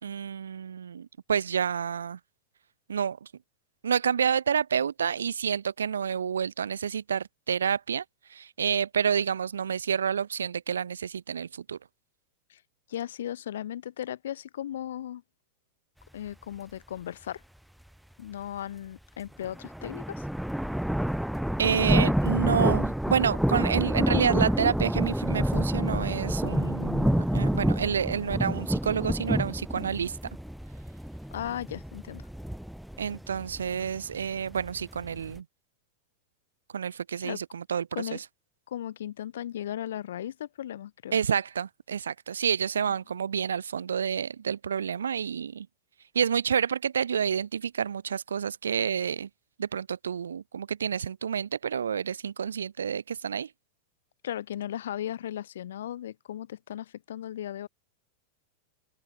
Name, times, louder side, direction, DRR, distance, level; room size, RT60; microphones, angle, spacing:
voice 1, 0.0-2.2 2.9-3.3 3.8-8.0 8.3-11.8 21.6-30.2 33.0-35.4 36.7-38.2 41.1-45.7 46.1-49.3 49.6-53.5, right 7 dB, 70° right, 4.2 m, -29 dB
voice 2, 12.9-15.2 16.1-17.4 18.2-20.3 31.3-32.3 37.2-37.4 37.9-38.2 38.7-41.2 54.2-57.7, left 11 dB, 60° left, 6.8 m, -36 dB
sound 1, 19.4-35.4, equal, ahead, 3.8 m, -28 dB
open air
figure-of-eight pair, 90°, 0 cm